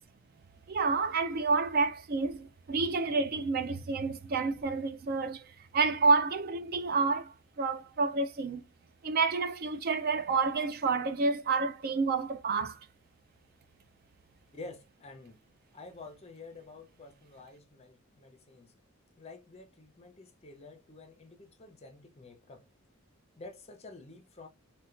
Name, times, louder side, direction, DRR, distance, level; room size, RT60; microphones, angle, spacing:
voice 1, 0.7-8.6 9.0-12.8, right 4 dB, 45° right, 0.3 m, -29 dB
voice 2, 14.5-15.4 15.7-18.7 19.2-22.7 23.4-24.5, left 3 dB, 30° left, 0.6 m, -49 dB
4.2 x 2.2 x 2.4 m
head